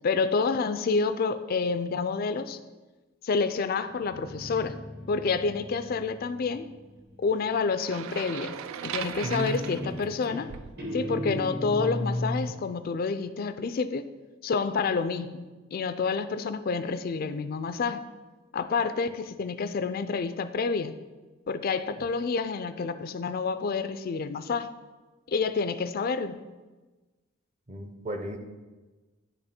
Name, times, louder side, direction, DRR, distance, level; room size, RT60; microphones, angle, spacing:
voice 1, 0.0-2.6 3.2-4.8 5.1-6.7 7.2-10.5 10.9-14.1 14.4-15.4 15.7-18.1 18.5-21.0 21.5-24.7 25.3-26.4, left 4 dB, 45° left, 11 dB, 0.3 m, -28 dB
Guitar, 3.9-7.5 9.0-9.4 9.7-12.6, left 1 dB, 50° right, 1.3 m, -36 dB
sound 1, 7.8-10.8, right 9 dB, 85° right, 0.3 m, -38 dB
voice 2, 9.2-9.7 27.7-28.4, right 1 dB, 35° right, 5 dB, 0.7 m, -33 dB
10.0 x 3.4 x 4.3 m, 1.2 s
head